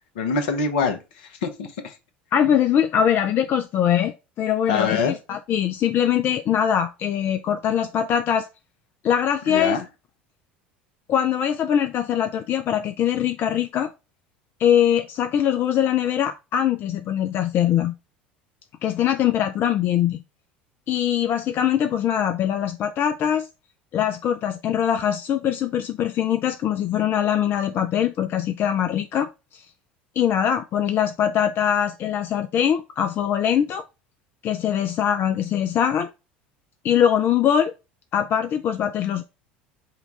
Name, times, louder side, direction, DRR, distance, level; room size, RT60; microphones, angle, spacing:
voice 1, 0.2-1.0 1.4-1.9 4.7-5.2 9.5-9.9, left 5 dB, 65° left, 0.9 m, -24 dB
voice 2, 2.3-8.5 9.0-9.8 11.1-13.9 14.6-17.9 18.8-20.2 20.9-23.5 23.9-29.6 30.2-33.8 34.4-36.1 36.8-37.7 38.1-39.2, left 9 dB, 40° left, 0.4 m, -22 dB
5.7 x 2.3 x 4.0 m
figure-of-eight pair, 70°, 5 cm